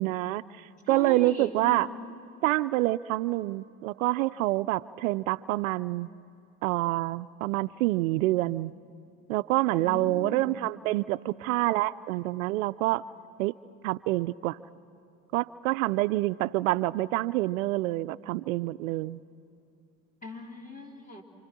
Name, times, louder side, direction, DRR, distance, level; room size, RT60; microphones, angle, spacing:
voice 1, 0.0-1.9 2.4-6.1 6.6-8.7 9.3-13.1 13.4-13.5 13.8-14.6 15.3-19.2, right 18 dB, 75° right, 15 dB, 0.5 m, -27 dB
voice 2, 0.8-2.1 9.8-10.6 20.2-21.2, left 2 dB, 20° left, 1 dB, 3.9 m, -40 dB
28.5 x 27.5 x 6.1 m, 2.7 s
hypercardioid pair, 70°, 41 cm